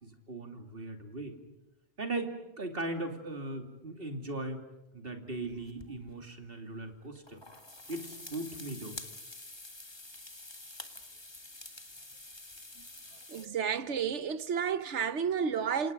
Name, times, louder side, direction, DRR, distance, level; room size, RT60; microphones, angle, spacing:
voice 1, 0.0-1.4 2.0-4.6 4.9-7.4 7.9-9.0, right 2 dB, 50° right, 2.9 m, -38 dB
sound 1, 5.3-6.1 7.2-13.5, left 2 dB, 20° left, 1.8 m, -48 dB
voice 2, 13.3-15.9, right 7 dB, 75° right, 1.3 m, -31 dB
28.0 x 27.5 x 5.3 m
omnidirectional pair, 1.2 m